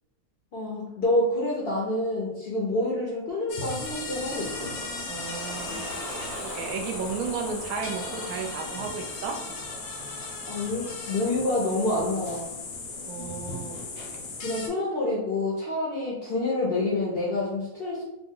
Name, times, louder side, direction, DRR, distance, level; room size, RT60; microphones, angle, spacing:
voice 1, 0.5-4.7 10.5-12.6 14.1-18.0, left 2 dB, 60° left, -4 dB, 0.6 m, -28 dB
sound 1, 3.5-14.7, left 3 dB, 80° left, 1.2 m, -37 dB
Ocean, 3.8-12.6, right 1 dB, 45° right, 1.1 m, -42 dB
voice 2, 5.1-5.7 6.4-9.4 13.0-13.8, right 5 dB, 75° right, 3 dB, 1.0 m, -33 dB
2.9 x 2.0 x 3.6 m, 0.91 s
omnidirectional pair, 1.6 m